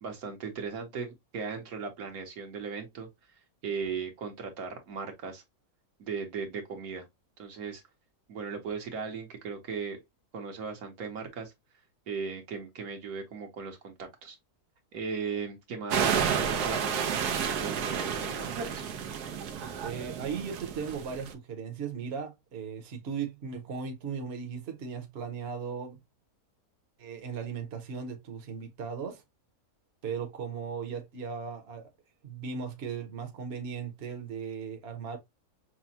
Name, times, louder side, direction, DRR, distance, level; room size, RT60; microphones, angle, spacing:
voice 1, 0.0-3.1 3.6-5.4 6.0-7.1 7.4-7.8 8.3-10.0 10.3-11.5 12.1-14.4 14.9-18.8, right 5 dB, 70° right, 1.5 m, -37 dB
sound 1, 15.9-21.3, right 7 dB, 85° right, 1.3 m, -31 dB
voice 2, 19.8-26.0 27.0-29.2 30.0-31.9 32.2-35.2, right 6 dB, 50° right, 1.1 m, -37 dB
6.2 x 2.2 x 2.7 m
omnidirectional pair, 1.6 m